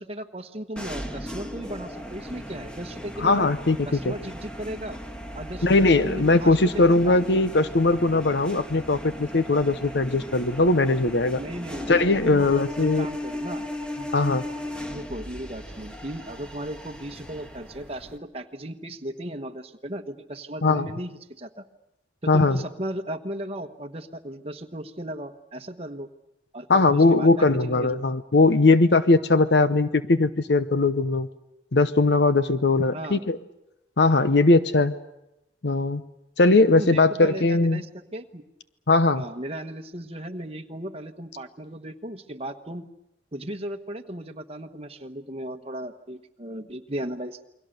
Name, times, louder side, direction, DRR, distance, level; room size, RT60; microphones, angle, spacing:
voice 1, 0.0-3.5 3.8-5.0 5.3-7.2 11.4-11.9 12.2-12.5 12.8-13.7 13.9-14.1 14.9-21.7 22.2-26.1 26.5-28.0 32.9-33.2 36.7-38.4 39.1-42.9 43.3-47.4, right 1 dB, 35° right, 6 dB, 1.3 m, -36 dB
sound 1, 0.8-18.2, left 1 dB, 5° left, 1.6 m, -37 dB
voice 2, 3.2-4.1 5.6-11.4 11.9-13.1 14.1-14.4 20.6-20.9 22.3-22.6 26.7-31.3 31.7-33.4 34.0-34.9 35.6-36.0 36.4-37.8 38.9-39.2, left 3 dB, 65° left, 12 dB, 0.8 m, -20 dB
29.0 x 22.5 x 6.8 m, 0.90 s
head